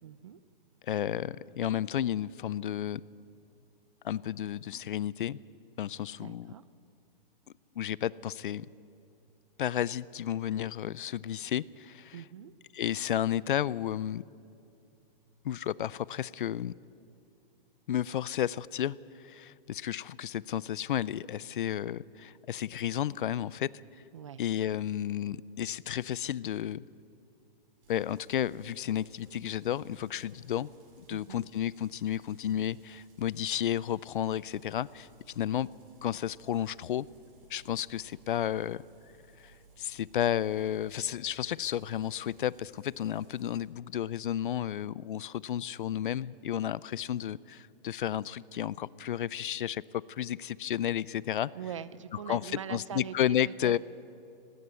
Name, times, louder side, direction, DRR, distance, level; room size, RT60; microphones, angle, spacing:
voice 1, 0.0-0.4 6.2-6.6 12.1-12.5 24.1-24.4 31.1-31.5 51.5-53.7, right 9 dB, 35° right, 17 dB, 0.4 m, -42 dB
voice 2, 0.8-3.0 4.0-5.4 5.8-6.5 7.8-8.7 9.6-12.2 12.7-14.2 15.4-16.7 17.9-23.7 24.4-26.8 27.9-30.7 31.1-35.1 35.3-35.7 36.0-37.1 37.5-38.8 39.4-51.5 52.3-53.8, left 10 dB, 60° left, 22 dB, 0.5 m, -32 dB
sound 1, 27.8-43.6, right 4 dB, 70° right, 6.0 m, -61 dB
18.0 x 17.5 x 8.4 m, 2.6 s
hypercardioid pair, 170°, 29 cm